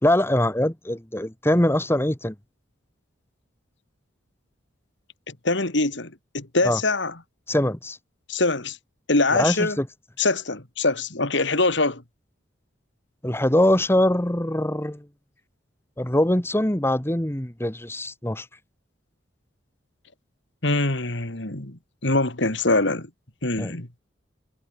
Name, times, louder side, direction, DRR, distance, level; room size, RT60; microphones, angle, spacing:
voice 1, 0.0-2.3 6.6-6.8 7.5-8.0 9.3-9.9 13.2-15.1 16.0-18.5 23.6-23.8, left 1 dB, 10° left, 1.4 m, -22 dB
voice 2, 5.3-7.1 8.3-8.8 9.1-9.8 10.2-12.0 20.6-23.1 23.4-23.9, left 2 dB, 65° left, 2.8 m, -23 dB
head